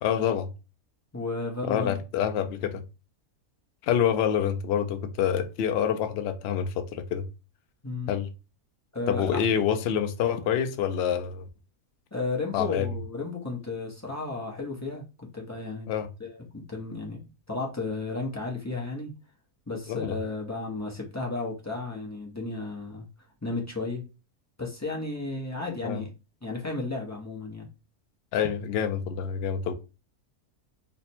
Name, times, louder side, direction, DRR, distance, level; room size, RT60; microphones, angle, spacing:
voice 1, 0.0-0.5 1.6-2.8 3.8-7.3 8.1-8.3 9.1-11.5 12.5-12.9 15.9-16.1 19.9-20.2 25.8-26.0 28.3-29.7, left 8 dB, 70° left, 0.6 m, -27 dB
voice 2, 1.1-2.0 7.8-8.1 8.9-9.5 12.1-15.9 16.2-19.1 19.7-23.1 23.4-24.1 24.6-26.1 26.4-27.7, left 3 dB, 20° left, 0.5 m, -33 dB
3.3 x 2.1 x 4.2 m
omnidirectional pair, 1.6 m